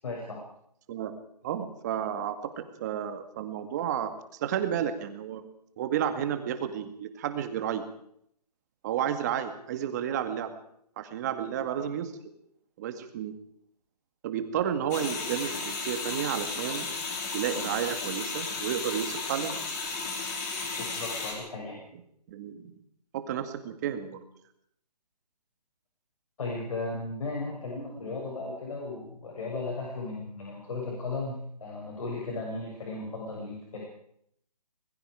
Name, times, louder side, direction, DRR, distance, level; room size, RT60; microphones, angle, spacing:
voice 1, 0.0-0.4 20.8-21.8 26.4-33.8, left 3 dB, 55° left, -2 dB, 7.3 m, -36 dB
voice 2, 1.4-5.5 5.8-7.8 8.8-10.5 11.0-12.1 12.8-13.3 14.2-16.9 17.3-19.6 22.3-22.7 23.1-24.2, right 9 dB, 25° right, 9 dB, 2.0 m, -31 dB
sound 1, 14.9-21.3, left 4 dB, 25° left, 5.1 m, -34 dB
25.0 x 21.0 x 5.0 m, 0.70 s
hypercardioid pair, 165°, 21 cm